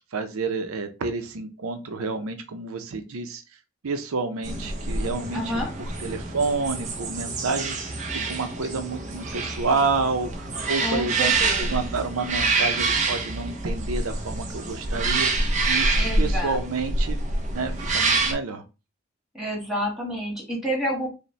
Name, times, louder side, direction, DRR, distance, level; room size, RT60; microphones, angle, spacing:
voice 1, 0.1-3.4 3.8-5.5 6.0-11.3 11.6-15.3 15.6-17.2 17.5-18.6, right 4 dB, 90° right, 8 dB, 0.6 m, -29 dB
sound 1, 4.4-18.3, right 3 dB, 35° right, 0.6 m, -26 dB
voice 2, 5.3-5.7 10.8-11.8 16.0-16.6 19.3-21.1, equal, ahead, -4 dB, 1.7 m, -29 dB
5.2 x 2.1 x 3.2 m, 0.29 s
head